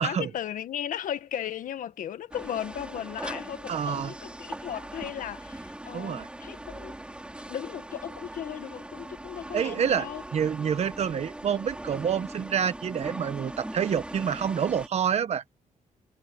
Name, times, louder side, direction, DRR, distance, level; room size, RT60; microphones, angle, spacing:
voice 1, 0.0-6.9 7.5-10.2, left 10 dB, 80° left, 1.5 m, -36 dB
sound 1, 2.3-14.9, right 1 dB, 10° right, 5.4 m, -40 dB
voice 2, 3.7-4.1 5.9-6.3 9.5-10.1 10.3-15.4, right 8 dB, 55° right, 1.3 m, -27 dB
wide cardioid pair, 150°, 13 cm